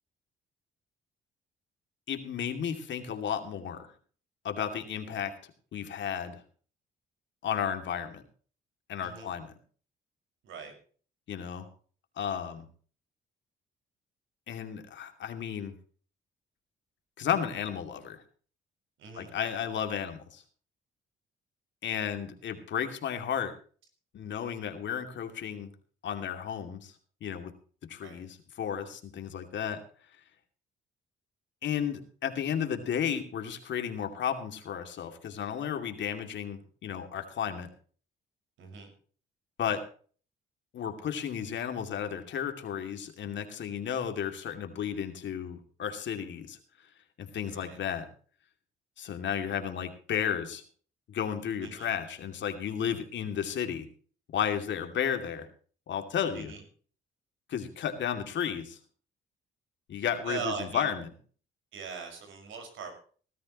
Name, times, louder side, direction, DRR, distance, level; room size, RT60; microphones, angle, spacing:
voice 1, 2.1-3.9 4.4-5.3 5.7-6.4 7.4-8.2 8.9-9.5 11.3-11.7 12.2-12.7 14.5-15.7 17.2-18.2 19.1-20.4 21.8-23.5 24.1-25.7 26.0-26.9 27.2-27.5 27.9-29.8 31.6-37.7 39.6-39.8 40.7-46.6 47.2-48.1 49.0-50.6 51.1-53.9 54.3-55.5 55.9-56.5 57.5-58.8 59.9-61.1, left 8 dB, 65° left, 7 dB, 2.6 m, -33 dB
voice 2, 9.0-9.3 10.4-10.7 19.0-19.3 28.0-28.2 38.6-38.9 47.5-47.8 51.6-51.9 56.3-56.6 60.0-60.9 61.7-62.9, right 5 dB, 80° right, 4 dB, 5.8 m, -40 dB
19.0 x 13.0 x 3.1 m, 0.42 s
cardioid pair, 90°, 20 cm